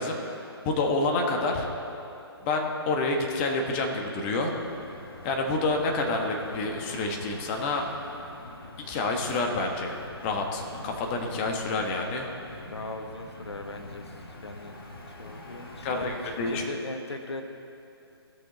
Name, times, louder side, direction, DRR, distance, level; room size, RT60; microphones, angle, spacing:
voice 1, 0.0-1.7 2.4-4.5 5.2-7.8 8.8-9.9 10.2-12.3 15.8-16.6, left 3 dB, 25° left, 2 dB, 1.3 m, -28 dB
sound 1, 4.4-16.6, left 2 dB, 60° left, 1.8 m, -45 dB
voice 2, 12.7-14.7 15.1-17.4, left 2 dB, 80° left, 5 dB, 1.2 m, -39 dB
17.0 x 6.5 x 4.0 m, 2.8 s
figure-of-eight pair, 140°, 14 cm